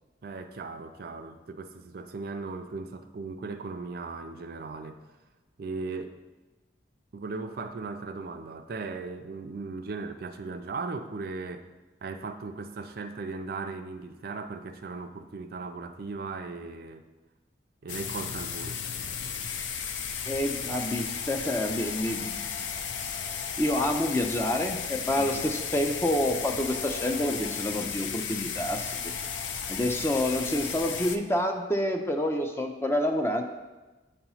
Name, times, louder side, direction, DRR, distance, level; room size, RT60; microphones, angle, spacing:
voice 1, 0.2-5.0 5.6-6.2 7.1-11.7 12.0-17.1 17.8-18.8 25.2-25.4, right 3 dB, 50° right, 8 dB, 0.4 m, -37 dB
sound 1, 17.9-31.2, left 7 dB, 75° left, 0.5 m, -34 dB
voice 2, 20.3-22.4 23.6-29.1 29.7-33.4, left 1 dB, 10° left, 4 dB, 0.4 m, -28 dB
8.8 x 2.9 x 5.5 m, 1.2 s
head